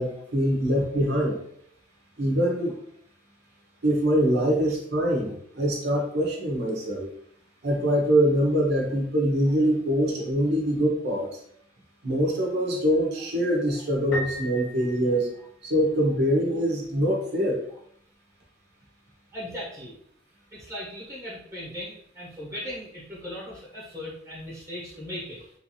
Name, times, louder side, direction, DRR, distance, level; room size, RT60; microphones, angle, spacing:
voice 1, 0.0-1.4 2.2-2.7 3.8-7.1 7.6-11.4 12.0-15.3 15.6-17.6, equal, 55° right, -2 dB, 1.0 m, -24 dB
Piano, 14.1-15.9, right 1 dB, 85° left, 0.8 m, -36 dB
voice 2, 19.3-19.9 20.5-25.5, left 1 dB, 15° right, -6 dB, 1.2 m, -38 dB
3.3 x 2.7 x 3.1 m, 0.69 s
head